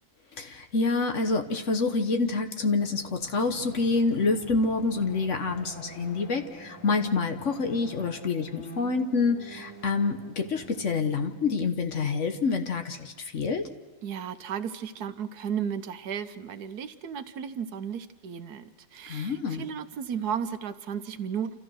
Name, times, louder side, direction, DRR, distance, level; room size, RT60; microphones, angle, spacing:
voice 1, 0.4-13.6 19.1-19.6, left 4 dB, 50° left, 7 dB, 1.4 m, -27 dB
sound 1, 2.8-12.0, right 2 dB, 65° left, 4.2 m, -46 dB
voice 2, 14.0-21.6, right 8 dB, 80° right, 11 dB, 1.4 m, -34 dB
29.0 x 14.0 x 6.3 m, 1.2 s
omnidirectional pair, 1.7 m